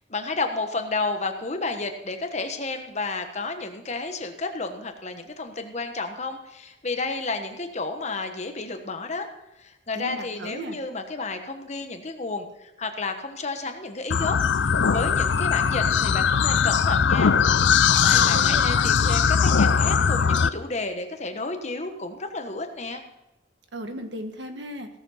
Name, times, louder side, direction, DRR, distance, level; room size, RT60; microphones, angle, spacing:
voice 1, 0.1-9.3 9.6-17.3 18.0-23.0, left 3 dB, 40° left, 5 dB, 1.3 m, -31 dB
voice 2, 9.9-10.8 18.1-19.0 23.7-24.9, equal, 75° right, 6 dB, 1.5 m, -36 dB
sound 1, 14.1-20.5, left 6 dB, 80° left, 0.5 m, -20 dB
16.5 x 7.3 x 5.7 m, 0.96 s
head